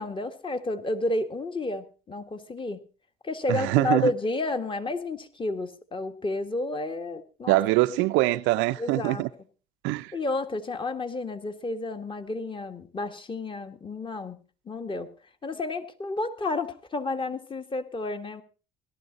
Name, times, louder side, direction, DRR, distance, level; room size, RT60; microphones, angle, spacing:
voice 1, 0.0-2.8 3.2-7.6 8.8-9.3 10.1-14.4 14.7-15.1 15.4-18.4, left 2 dB, 25° left, 1.8 m, -31 dB
voice 2, 3.5-4.1 7.5-9.3 9.8-10.1, right 18 dB, 75° right, 0.6 m, -23 dB
17.5 x 12.0 x 4.0 m
hypercardioid pair, 70°, 20 cm